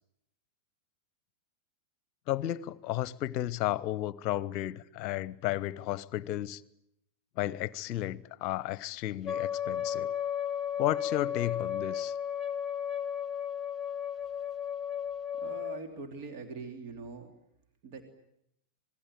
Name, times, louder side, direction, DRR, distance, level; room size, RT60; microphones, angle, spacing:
voice 1, 2.3-6.6 7.4-10.1 10.8-12.1, left 14 dB, 40° left, 0.9 m, -33 dB
Wind instrument woodwind instrument, 9.3-15.8, left 9 dB, 20° left, 1.5 m, -34 dB
voice 2, 15.4-17.3 17.8-18.1, right 4 dB, 45° right, 3.1 m, -42 dB
26.0 x 20.5 x 9.2 m
figure-of-eight pair, 90°, 0 cm